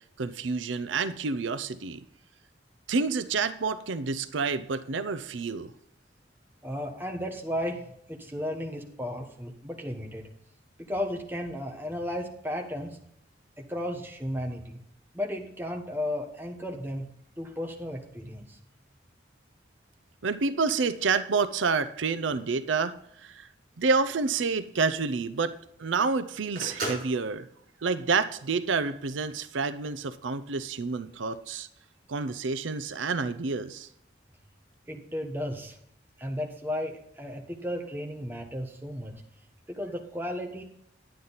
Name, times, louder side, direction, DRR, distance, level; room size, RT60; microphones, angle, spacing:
voice 1, 0.2-2.0 2.9-5.7 20.2-23.5 23.8-25.5 25.8-27.5 27.8-31.7 32.1-33.9, right 4 dB, 80° right, 13 dB, 0.6 m, -28 dB
voice 2, 6.6-10.3 10.8-13.0 13.6-14.8 15.1-17.1 17.4-18.6 34.9-35.8 36.2-39.2 39.7-40.6, left 1 dB, 10° right, 2 dB, 1.3 m, -34 dB
Telephone, 24.1-28.9, right 2 dB, 45° right, 4.9 m, -39 dB
10.0 x 9.4 x 4.1 m, 0.72 s
head